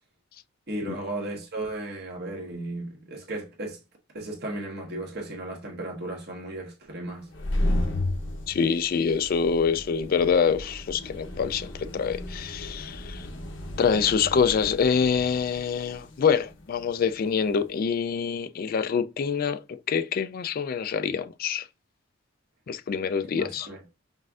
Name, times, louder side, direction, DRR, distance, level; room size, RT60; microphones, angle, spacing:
voice 1, 0.7-3.8 4.1-7.3 23.3-23.8, right 2 dB, 55° right, 1.2 m, -35 dB
sound 1, 7.2-17.7, left 1 dB, 65° left, 0.9 m, -34 dB
voice 2, 8.5-13.3 13.8-21.7 22.7-23.7, left 6 dB, 45° left, 0.3 m, -25 dB
5.3 x 2.5 x 2.4 m
head